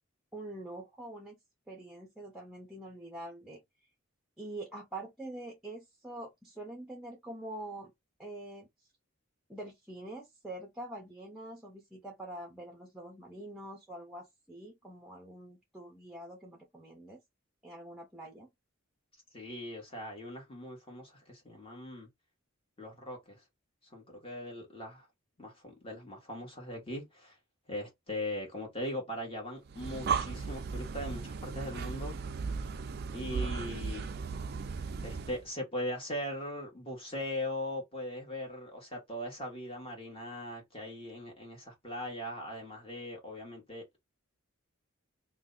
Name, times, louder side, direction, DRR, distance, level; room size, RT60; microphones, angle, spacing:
voice 1, 0.3-1.4 1.7-3.6 4.4-7.9 8.2-8.7 9.5-17.2 17.6-18.5, right 1 dB, ahead, 0.7 m, -45 dB
voice 2, 19.3-22.1 22.8-23.4 23.9-25.1 25.4-27.4 27.7-32.2 33.1-34.0 35.0-44.0, left 1 dB, 25° left, 1.3 m, -40 dB
Breathing, 29.7-35.4, right 5 dB, 50° right, 0.4 m, -36 dB
2.7 x 2.2 x 3.8 m
head